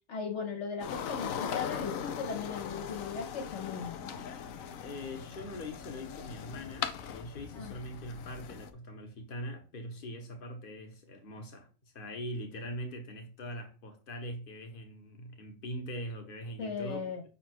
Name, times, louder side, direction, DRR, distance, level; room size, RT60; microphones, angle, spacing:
voice 1, 0.1-4.3 7.5-7.7 16.6-17.2, left 5 dB, 65° left, 1.0 m, -38 dB
sound 1, 0.8-8.7, left 8 dB, 90° left, 1.1 m, -39 dB
voice 2, 4.8-11.7 11.9-17.1, equal, 45° left, 1.2 m, -42 dB
5.7 x 4.2 x 4.4 m
omnidirectional pair, 1.4 m